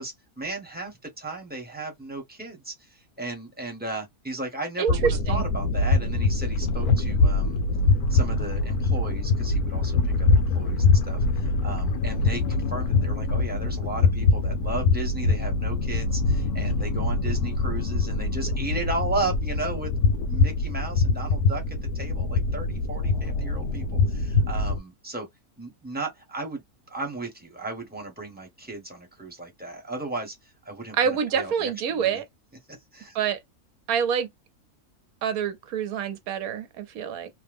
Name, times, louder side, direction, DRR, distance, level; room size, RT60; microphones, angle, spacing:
voice 1, 0.0-7.6 8.1-10.3 10.5-19.9 20.3-25.3 25.6-32.2 32.9-33.2, right 2 dB, 5° right, 1.0 m, -35 dB
voice 2, 4.8-5.4 30.9-32.2 33.1-33.4 33.9-34.3 35.2-37.3, right 7 dB, 75° right, 1.1 m, -26 dB
sound 1, 4.9-24.8, left 3 dB, 85° left, 1.2 m, -24 dB
2.9 x 2.1 x 3.5 m
omnidirectional pair, 1.6 m